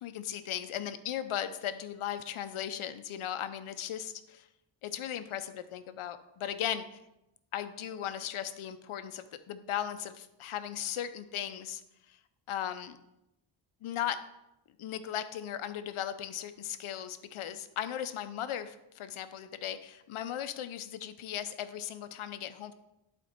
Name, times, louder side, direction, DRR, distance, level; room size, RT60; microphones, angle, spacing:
voice 1, 0.0-4.5 4.8-6.8 7.5-11.8 12.5-13.0 13.8-14.2 14.8-22.7, left 10 dB, 85° left, 11 dB, 0.8 m, -37 dB
11.0 x 4.4 x 4.4 m, 0.88 s
cardioid pair, 95°, 49 cm